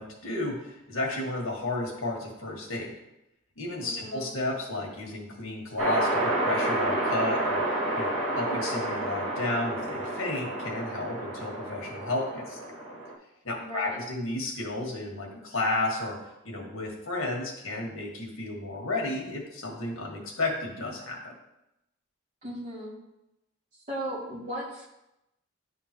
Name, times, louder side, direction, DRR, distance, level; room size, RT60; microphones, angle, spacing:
voice 1, 0.0-2.9 3.6-7.6 7.9-12.6 13.4-16.2 16.4-21.3, left 2 dB, 75° left, 0 dB, 1.5 m, -32 dB
voice 2, 3.8-4.3 13.6-14.0 22.4-23.0 23.9-24.9, right 1 dB, 35° right, -8 dB, 2.3 m, -36 dB
sound 1, 5.8-13.1, right 1 dB, 70° right, 1.9 m, -30 dB
10.0 x 3.7 x 3.0 m, 0.89 s
head